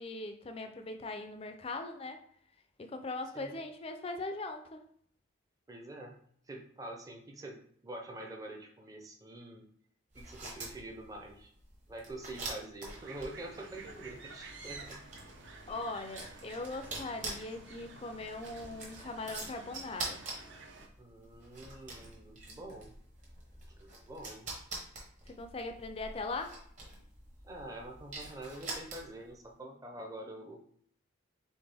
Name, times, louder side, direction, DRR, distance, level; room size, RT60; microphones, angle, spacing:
voice 1, 0.0-2.2 2.8-4.9 15.7-20.2 25.3-26.6, left 2 dB, 30° left, 6 dB, 0.4 m, -40 dB
voice 2, 5.7-9.7 10.1-11.5 11.9-15.0 21.0-23.0 23.8-24.5 27.4-30.7, right 1 dB, 15° right, 2 dB, 0.6 m, -46 dB
sound 1, 10.1-29.3, right 2 dB, 35° right, 1.2 m, -46 dB
sound 2, 12.9-20.9, right 3 dB, 65° right, 0.7 m, -51 dB
4.2 x 3.6 x 3.4 m, 0.63 s
head